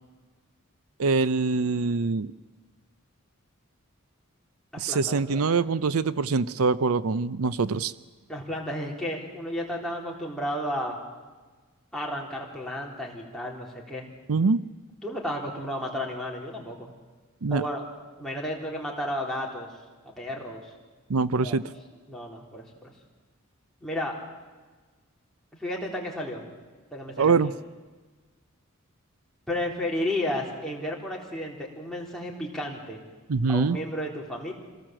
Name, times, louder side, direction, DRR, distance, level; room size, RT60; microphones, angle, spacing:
voice 1, 1.0-2.3 4.8-7.9 14.3-14.6 17.4-17.6 21.1-21.6 27.2-27.5 33.3-33.8, right 4 dB, 85° right, 15 dB, 0.6 m, -24 dB
voice 2, 4.9-5.6 8.3-11.0 11.9-14.1 15.0-16.9 17.5-17.9 18.2-19.7 20.2-20.7 21.4-21.6 22.1-22.9 23.8-24.2 25.6-26.5 26.9-27.4 29.5-33.0 33.5-34.5, left 1 dB, ahead, -4 dB, 3.7 m, -32 dB
26.0 x 18.0 x 7.6 m, 1.4 s
head